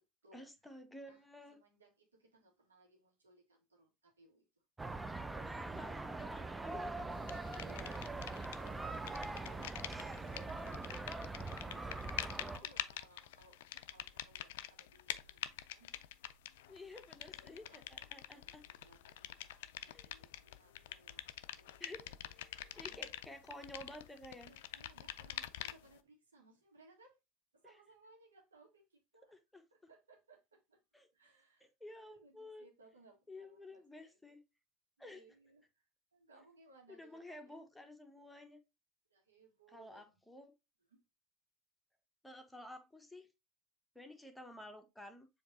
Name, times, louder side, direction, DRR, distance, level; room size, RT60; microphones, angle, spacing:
voice 1, 0.3-1.6 5.7-7.1 12.2-12.5 16.7-18.6 19.9-20.1 21.8-22.1 22.3-24.5 27.6-27.8 29.3-29.6 30.9-31.1 31.6-32.7 33.3-34.4 35.0-35.2 36.9-38.6 39.7-40.5 42.2-43.3 43.9-45.3, left 1 dB, 5° left, 1.0 m, -52 dB
voice 2, 1.5-4.4 6.6-8.3 8.6-10.3 10.8-11.1 11.5-13.6 13.9-15.9 17.4-21.3 21.6-22.3 22.6-23.2 24.4-27.2 27.5-29.4 29.7-30.8 31.1-34.2 35.0-35.8 36.1-37.6 39.1-40.1 40.9-41.0, right 2 dB, 85° right, 1.5 m, -65 dB
sound 1, 4.8-12.6, right 3 dB, 15° right, 0.4 m, -42 dB
sound 2, 7.3-8.7 8.9-26.0, left 13 dB, 70° left, 0.3 m, -46 dB
7.0 x 2.9 x 2.6 m
figure-of-eight pair, 70°, 0 cm